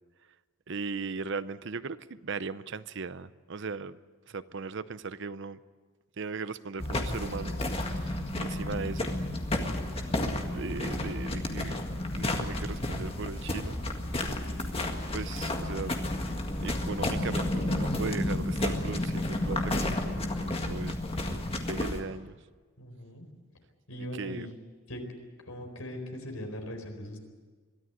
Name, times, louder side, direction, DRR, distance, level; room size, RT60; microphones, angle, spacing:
voice 1, 0.7-4.0 4.3-5.6 6.2-7.6 8.0-9.1 10.3-11.8 12.1-13.8 15.1-16.0 16.6-21.0 21.3-22.4 24.0-24.5, right 4 dB, 55° right, 15 dB, 0.6 m, -38 dB
sound 1, 6.8-22.0, left 1 dB, 25° left, 1.8 m, -31 dB
voice 2, 22.8-23.3 23.9-24.5 24.9-25.0 25.5-27.2, left 1 dB, 80° left, 4 dB, 4.4 m, -40 dB
22.5 x 14.0 x 9.5 m, 1.4 s
head